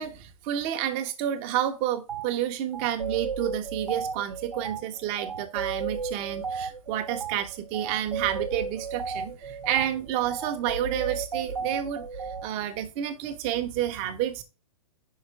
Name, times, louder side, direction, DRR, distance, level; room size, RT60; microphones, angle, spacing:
voice 1, 0.0-14.4, right 11 dB, 30° right, 0.8 m, -30 dB
sound 1, 2.1-2.3 2.7-12.5, right 5 dB, 85° right, 0.7 m, -34 dB
5.7 x 4.3 x 4.5 m
figure-of-eight pair, 120°, 19 cm